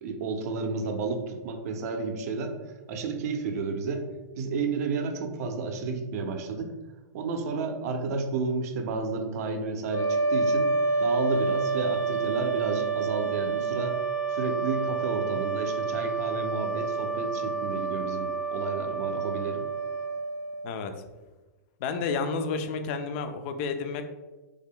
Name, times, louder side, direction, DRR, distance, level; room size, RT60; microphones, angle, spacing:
voice 1, 0.0-2.5 2.9-4.0 4.4-6.7 7.1-10.7 11.0-14.0 14.3-19.7, right 4 dB, 55° right, 5 dB, 0.5 m, -31 dB
sound 1, 9.9-20.8, right 4 dB, 80° left, 1.2 m, -29 dB
voice 2, 20.6-20.9 21.8-24.0, left 5 dB, 40° left, 7 dB, 0.4 m, -30 dB
3.3 x 2.1 x 3.6 m, 1.2 s
hypercardioid pair, 145°, 10 cm